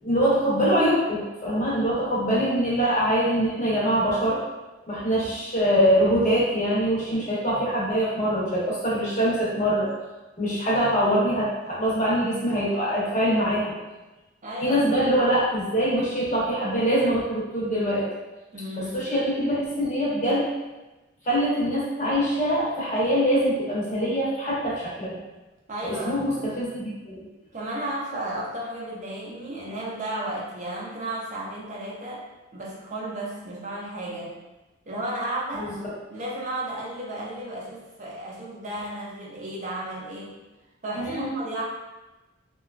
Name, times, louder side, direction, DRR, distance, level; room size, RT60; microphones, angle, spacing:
voice 1, 0.0-4.4 4.9-9.9 10.4-13.7 14.6-18.1 18.8-20.5 21.2-25.2 25.8-27.2 35.5-35.7 40.9-41.3, equal, 40° left, -7 dB, 0.9 m, -23 dB
voice 2, 14.4-15.1 18.5-19.1 25.7-26.2 27.5-32.2 32.5-34.4 34.9-35.8 36.1-40.4 40.8-41.6, right 1 dB, 40° right, -5 dB, 0.5 m, -33 dB
2.9 x 2.3 x 2.4 m, 1.1 s
head